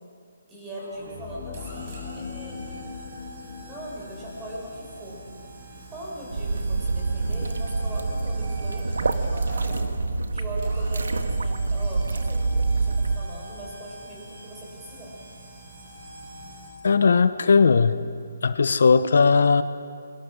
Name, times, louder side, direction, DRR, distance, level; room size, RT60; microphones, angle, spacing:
voice 1, 0.5-2.9 3.6-5.2 5.9-9.9 10.3-15.1, right 1 dB, 10° right, -4 dB, 6.4 m, -40 dB
sound 1, 0.7-16.7, right 1 dB, 40° right, 7.9 m, -43 dB
sound 2, 0.9-6.8, left 6 dB, 25° left, 1.4 m, -42 dB
sound 3, 6.3-13.2, right 3 dB, 85° right, 1.6 m, -26 dB
voice 2, 16.8-17.9 18.4-19.6, left 5 dB, 65° left, 12 dB, 1.0 m, -18 dB
27.5 x 23.5 x 6.5 m, 2.2 s
hypercardioid pair, 165°, 0 cm